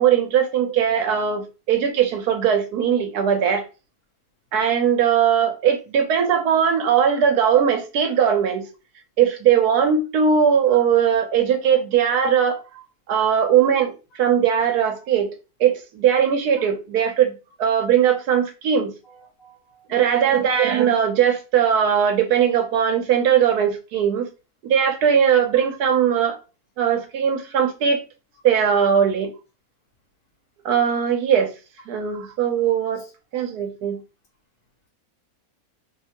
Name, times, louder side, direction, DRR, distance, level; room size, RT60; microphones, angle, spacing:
voice 1, 0.0-3.7 4.5-8.7 9.2-12.6 13.1-13.9 14.2-15.3 15.6-17.3 17.6-18.9 19.9-24.3 24.6-26.4 26.8-28.0 28.4-29.3 30.6-31.5 31.9-33.0 33.3-34.0, right 8 dB, 90° right, 1.3 m, -19 dB
voice 2, 19.0-20.4 32.9-33.1, right 1 dB, 55° left, 1.5 m, -46 dB
3.2 x 3.0 x 2.9 m
omnidirectional pair, 1.6 m